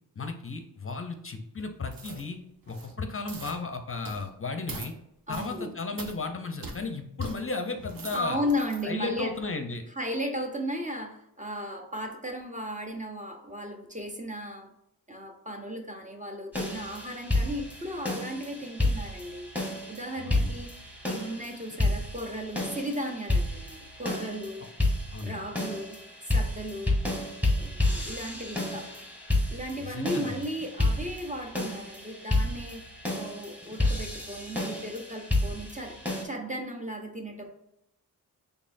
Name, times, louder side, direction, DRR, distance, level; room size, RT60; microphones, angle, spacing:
voice 1, 0.2-2.4 2.7-4.9 5.3-8.4 8.8-9.8 20.2-20.5 25.1-25.5 29.8-30.4, left 3 dB, 35° left, 6 dB, 0.5 m, -34 dB
sound 1, 1.9-2.3 2.6-2.9 3.3-3.6 4.0-4.3 4.7-4.9 5.3-5.6 6.0-6.2 6.6-6.8 7.2-7.4 7.8-8.8 9.3-9.4, right 3 dB, 60° right, 0.8 m, -42 dB
voice 2, 5.3-5.8 8.1-9.3 9.9-14.7 15.1-19.5 19.9-20.8 21.1-24.7 25.2-26.0 26.3-27.0 27.5-28.9 29.5-32.8 33.1-37.5, equal, 20° right, 3 dB, 0.5 m, -35 dB
sound 2, 16.5-36.2, left 1 dB, 5° right, 1.0 m, -30 dB
4.1 x 3.4 x 2.5 m, 0.80 s
wide cardioid pair, 75°, 40 cm